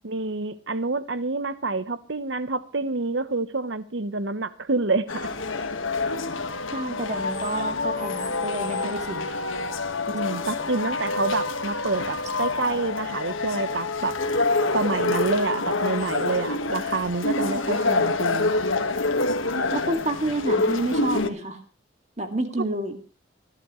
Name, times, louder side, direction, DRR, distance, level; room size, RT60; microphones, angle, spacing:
voice 1, 0.0-5.3 10.1-14.1 14.7-18.5, right 3 dB, 65° right, 14 dB, 1.0 m, -27 dB
sound 1, 5.1-21.3, left 3 dB, 80° left, 1.6 m, -27 dB
voice 2, 6.7-9.4 19.7-21.6 22.2-23.0, right 1 dB, 35° right, 5 dB, 2.2 m, -29 dB
28.0 x 12.0 x 3.2 m, 0.32 s
head